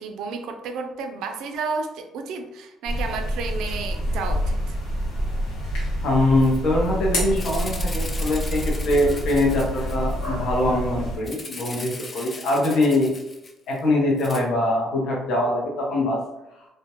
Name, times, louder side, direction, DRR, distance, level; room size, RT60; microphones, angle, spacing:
voice 1, 0.0-4.8, right 4 dB, 75° right, 5 dB, 0.3 m, -32 dB
sound 1, 2.9-11.2, equal, 90° left, 0.8 m, -27 dB
voice 2, 6.0-13.1 13.7-16.2, left 1 dB, 60° left, -3 dB, 0.6 m, -23 dB
Rattle (instrument), 6.4-6.6 6.9-7.0 7.3-10.3 11.2-13.8 14.2-14.4, left 3 dB, 25° left, 0.3 m, -39 dB
2.1 x 2.1 x 2.8 m, 0.93 s
cardioid pair, 140°, 0 cm